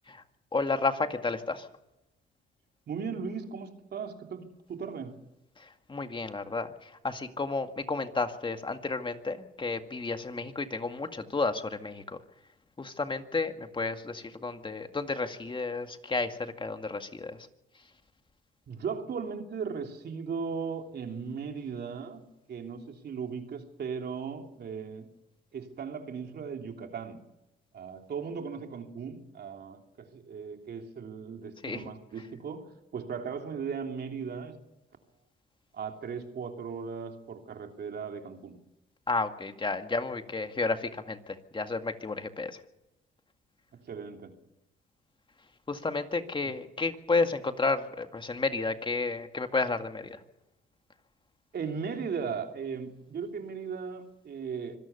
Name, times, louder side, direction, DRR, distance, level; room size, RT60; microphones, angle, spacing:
voice 1, 0.5-1.7 5.6-12.2 12.8-17.4 31.6-31.9 39.1-42.6 45.7-50.2, left 3 dB, 25° left, 7 dB, 2.0 m, -32 dB
voice 2, 2.9-4.4 4.7-5.2 18.7-22.2 22.5-25.1 25.5-27.2 27.7-34.6 35.7-38.5 43.8-44.3 51.5-54.8, right 6 dB, 55° right, 4 dB, 3.2 m, -37 dB
25.5 x 17.0 x 7.0 m, 0.92 s
cardioid pair, 90°, 20 cm